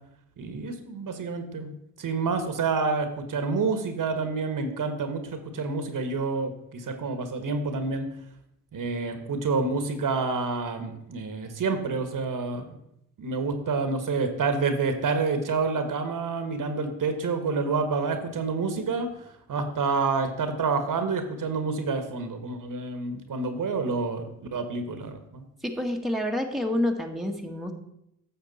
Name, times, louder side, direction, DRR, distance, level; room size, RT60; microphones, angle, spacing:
voice 1, 0.4-5.2 5.5-8.1 8.7-12.7 13.2-19.1 19.5-25.4, right 4 dB, 50° right, 8 dB, 1.4 m, -28 dB
voice 2, 25.6-27.7, left 1 dB, ahead, 2 dB, 1.3 m, -28 dB
9.9 x 6.6 x 4.1 m, 0.80 s
supercardioid pair, 55°, 40 cm